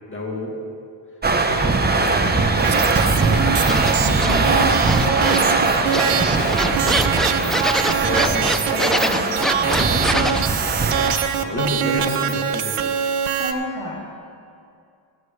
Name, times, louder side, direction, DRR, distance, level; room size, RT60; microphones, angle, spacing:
voice 1, 0.1-0.5 1.4-3.0 11.4-12.9, left 1 dB, 25° left, -2 dB, 2.2 m, -29 dB
sound 1, 1.2-11.2, right 3 dB, 20° right, 0.8 m, -21 dB
sound 2, 2.6-13.5, right 8 dB, 80° right, 0.9 m, -24 dB
sound 3, 3.2-4.4 4.8-5.6 5.9-10.4, equal, ahead, 0.4 m, -25 dB
voice 2, 4.0-8.4 8.7-10.6 13.3-14.0, left 1 dB, 70° left, -3 dB, 2.7 m, -30 dB
23.5 x 8.5 x 3.2 m, 2.4 s
cardioid pair, 95°, 50 cm